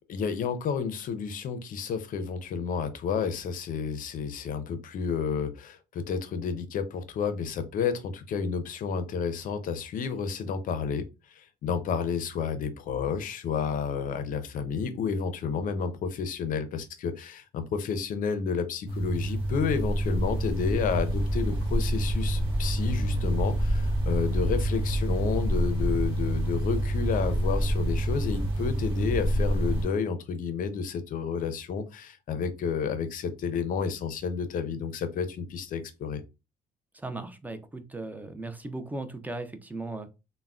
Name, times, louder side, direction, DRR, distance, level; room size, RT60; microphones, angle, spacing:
voice 1, 0.1-11.0 11.4-36.2, left 6 dB, 55° left, 0.5 m, -31 dB
sound 1, 18.9-29.9, right 1 dB, 30° right, 1.2 m, -27 dB
voice 2, 36.9-40.1, right 2 dB, 10° right, 0.4 m, -37 dB
3.4 x 2.0 x 2.3 m
cardioid pair, 110°, 17 cm